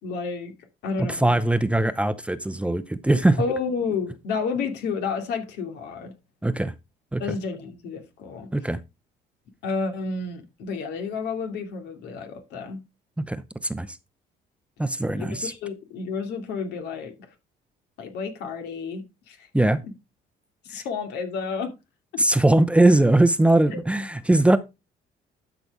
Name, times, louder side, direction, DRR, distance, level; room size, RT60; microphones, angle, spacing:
voice 1, 0.0-0.5 0.8-1.4 3.4-6.1 7.2-8.5 9.6-12.8 15.1-17.1 18.0-19.5 20.6-21.7 23.7-23.8, left 5 dB, 80° left, 2.6 m, -30 dB
voice 2, 1.0-3.4 6.4-6.7 7.1-7.4 8.5-8.8 13.2-14.0 14.8-15.5 19.5-19.8 22.2-24.6, right 2 dB, 5° right, 0.7 m, -21 dB
12.5 x 5.9 x 3.6 m
cardioid pair, 110°, 17 cm